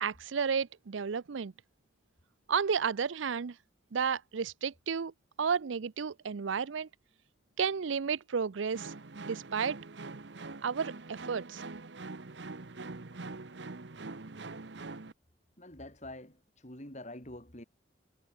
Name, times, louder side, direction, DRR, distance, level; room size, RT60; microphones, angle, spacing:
voice 1, 0.0-1.5 2.5-3.5 3.9-5.1 5.4-6.9 7.6-8.9 9.3-9.8 10.6-11.6, right 6 dB, 85° right, 0.5 m, -32 dB
sound 1, 8.7-15.1, right 3 dB, 65° right, 1.0 m, -44 dB
voice 2, 15.6-17.6, left 1 dB, 40° left, 4.7 m, -46 dB
head